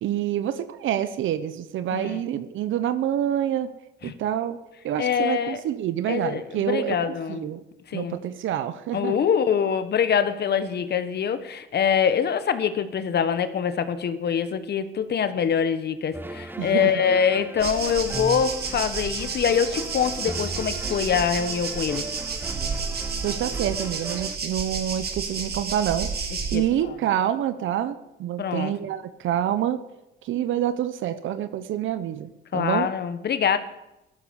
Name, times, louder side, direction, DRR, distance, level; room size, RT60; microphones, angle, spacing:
voice 1, 0.0-3.7 4.0-4.6 4.8-7.6 7.9-9.1 16.6-16.9 23.2-29.8 30.2-32.9, right 11 dB, 80° right, 12 dB, 1.0 m, -27 dB
voice 2, 1.9-2.2 4.0-4.1 5.0-5.6 6.1-7.5 7.9-8.2 8.9-22.0 26.5-26.6 28.4-28.7 32.5-33.6, left 7 dB, 55° left, 11 dB, 1.4 m, -24 dB
sound 1, 16.1-24.4, right 1 dB, 10° right, 1.1 m, -37 dB
sound 2, 17.6-26.6, right 5 dB, 50° right, 2.9 m, -31 dB
15.0 x 13.0 x 7.0 m, 0.92 s
cardioid pair, 90°, 20 cm